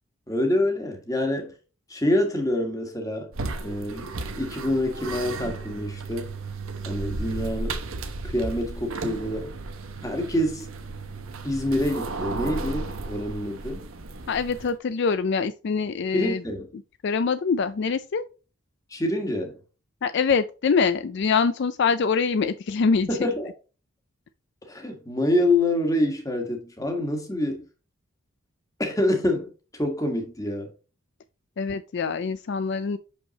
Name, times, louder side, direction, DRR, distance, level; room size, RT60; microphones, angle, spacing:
voice 1, 0.3-1.5 1.9-3.3 3.6-6.3 6.8-7.8 8.2-9.5 10.0-10.7 11.4-13.8 16.1-16.7 18.9-19.6 23.1-23.5 24.6-27.7 28.8-30.7, left 1 dB, 15° left, 1.4 m, -26 dB
sound 1, 3.3-14.8, right 3 dB, 75° right, 1.0 m, -34 dB
voice 2, 14.3-16.4 17.0-18.2 20.0-23.1 31.6-33.0, left 5 dB, 55° left, 0.4 m, -24 dB
6.4 x 5.3 x 2.9 m
head